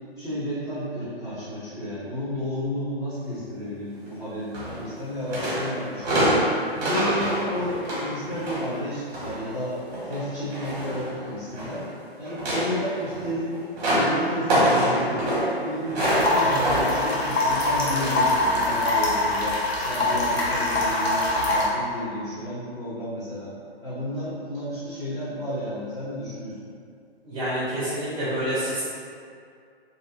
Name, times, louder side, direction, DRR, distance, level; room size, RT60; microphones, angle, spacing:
voice 1, 0.2-6.3 6.8-9.8 10.0-11.8 12.2-13.6 13.8-15.3 15.6-19.6 19.8-23.5 23.8-26.7, equal, 10° left, -14 dB, 1.2 m, -32 dB
sound 1, 4.5-5.0 5.3-9.4 9.8-11.9 12.2-18.4 18.7-18.9 19.9-20.1 20.7-20.8, equal, 40° right, 1.0 m, -26 dB
sound 2, 16.0-21.7, left 2 dB, 70° left, 0.8 m, -23 dB
voice 2, 27.2-28.9, right 1 dB, 10° right, -12 dB, 1.5 m, -27 dB
2.6 x 2.6 x 2.5 m, 2.3 s
figure-of-eight pair, 125°, 32 cm